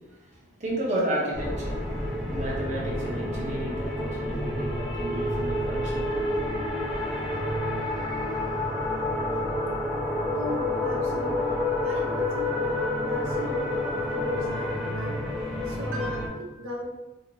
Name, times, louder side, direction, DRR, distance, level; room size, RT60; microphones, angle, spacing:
voice 1, 0.6-6.2 6.4-6.8, right 1 dB, 35° right, -4 dB, 0.6 m, -32 dB
sound 1, 1.3-16.3, left 1 dB, ahead, 0.3 m, -29 dB
voice 2, 10.4-15.2 15.5-16.9, equal, 75° right, -1 dB, 0.4 m, -37 dB
2.5 x 2.1 x 3.0 m, 1.1 s
head